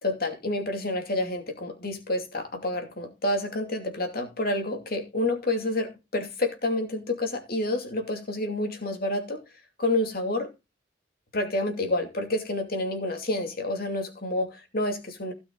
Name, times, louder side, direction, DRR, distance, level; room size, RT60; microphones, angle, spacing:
voice 1, 0.0-9.4 9.8-10.5 11.3-15.3, left 1 dB, 55° left, 2.6 m, -29 dB
16.5 x 6.1 x 3.8 m
head